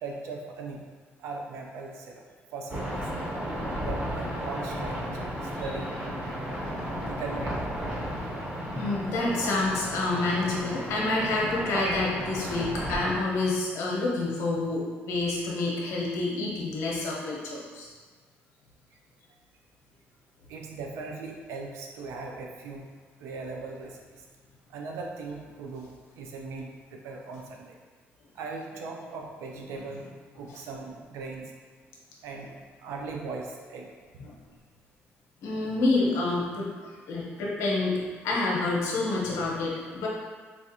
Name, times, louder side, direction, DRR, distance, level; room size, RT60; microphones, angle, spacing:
voice 1, 0.0-0.8 1.2-2.2 2.5-3.1 3.8-5.0 5.4-6.2 7.1-7.7 20.5-22.8 23.2-24.3 24.7-25.9 26.1-27.8 28.3-30.1 30.3-31.5 32.2-32.5 32.8-33.9, right 4 dB, 85° right, 1 dB, 0.4 m, -39 dB
sound 1, 2.7-13.2, equal, 25° right, 0.8 m, -33 dB
voice 2, 8.7-17.9 30.5-30.6 34.2-34.3 35.4-40.1, left 2 dB, 90° left, -3 dB, 0.9 m, -28 dB
4.6 x 2.4 x 2.7 m, 1.5 s
cardioid pair, 115°, 5 cm